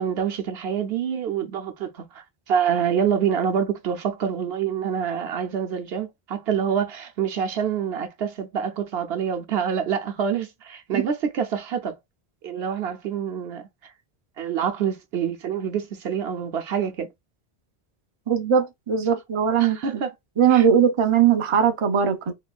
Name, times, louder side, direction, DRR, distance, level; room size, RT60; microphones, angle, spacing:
voice 1, 0.0-12.0 12.4-13.7 14.4-17.1 19.6-20.1 20.5-20.6, right 7 dB, 75° right, 0.9 m, -26 dB
voice 2, 18.3-19.8 20.4-22.3, right 8 dB, 35° right, 0.6 m, -20 dB
4.3 x 3.0 x 2.4 m
omnidirectional pair, 1.1 m